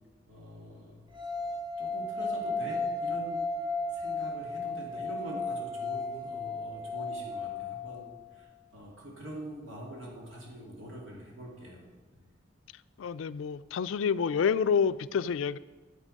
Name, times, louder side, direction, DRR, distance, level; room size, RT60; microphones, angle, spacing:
voice 1, 0.3-1.0 1.8-3.4 3.9-11.8 12.1-12.2, right 1 dB, 75° right, -2 dB, 2.5 m, -44 dB
sound 1, 1.1-8.2, left 3 dB, 25° right, 1.2 m, -34 dB
voice 2, 13.0-15.6, left 6 dB, 75° left, 16 dB, 0.3 m, -28 dB
11.0 x 7.8 x 5.3 m, 1.3 s
head